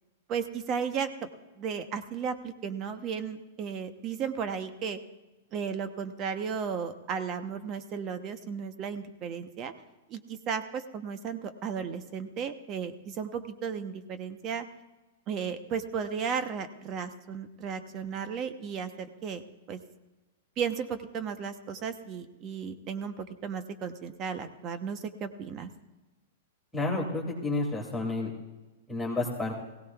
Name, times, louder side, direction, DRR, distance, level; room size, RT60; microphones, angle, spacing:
voice 1, 0.3-1.3 1.6-5.0 5.5-9.7 10.1-14.6 15.3-19.4 19.7-19.8 20.6-25.7, right 6 dB, 30° right, 9 dB, 0.9 m, -34 dB
voice 2, 26.7-28.3 28.9-29.6, left 2 dB, 5° left, -5 dB, 2.5 m, -30 dB
20.0 x 17.0 x 2.4 m, 1.1 s
hypercardioid pair, 145°, 0 cm